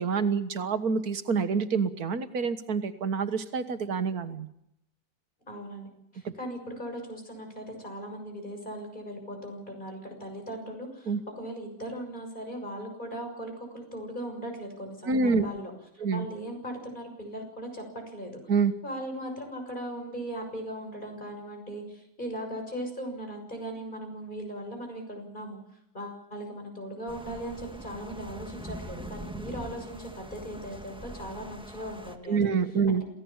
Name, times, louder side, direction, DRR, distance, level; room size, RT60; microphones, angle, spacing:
voice 1, 0.0-4.5 11.1-11.2 15.0-15.4 16.0-16.3 18.5-18.7 32.3-33.0, right 5 dB, 85° right, 10 dB, 1.9 m, -27 dB
voice 2, 5.5-18.3 18.8-25.6 25.9-32.5 32.9-33.0, right 1 dB, 30° left, 3 dB, 6.7 m, -38 dB
sound 1, 27.1-32.2, equal, 5° right, 1.5 m, -43 dB
27.5 x 16.5 x 7.2 m, 0.79 s
omnidirectional pair, 1.6 m